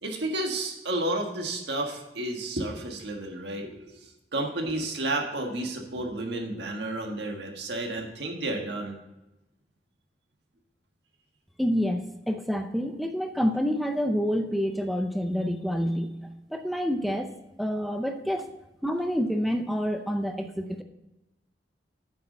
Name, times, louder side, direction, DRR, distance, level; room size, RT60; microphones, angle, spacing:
voice 1, 0.0-9.0, right 2 dB, 70° right, 2 dB, 1.7 m, -31 dB
voice 2, 11.6-17.3 17.6-18.5 18.8-20.8, equal, ahead, 5 dB, 0.5 m, -28 dB
8.3 x 6.6 x 5.4 m, 0.95 s
head